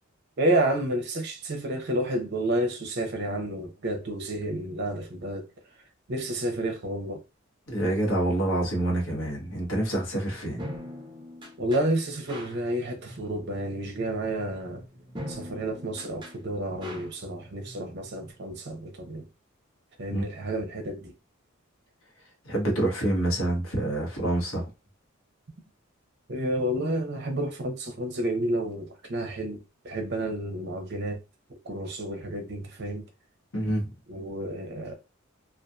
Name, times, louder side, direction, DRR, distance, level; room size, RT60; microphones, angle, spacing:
voice 1, 0.4-5.4 6.1-7.2 11.6-14.8 15.3-19.2 20.0-21.1 26.3-31.2 31.6-33.0 34.1-34.9, right 1 dB, 55° right, 0.7 m, -30 dB
voice 2, 7.7-10.6 20.1-20.2 22.4-24.6 33.5-33.8, right 1 dB, 70° left, 1.0 m, -27 dB
sound 1, 10.2-18.3, equal, 20° right, 0.7 m, -43 dB
2.7 x 2.3 x 2.3 m
head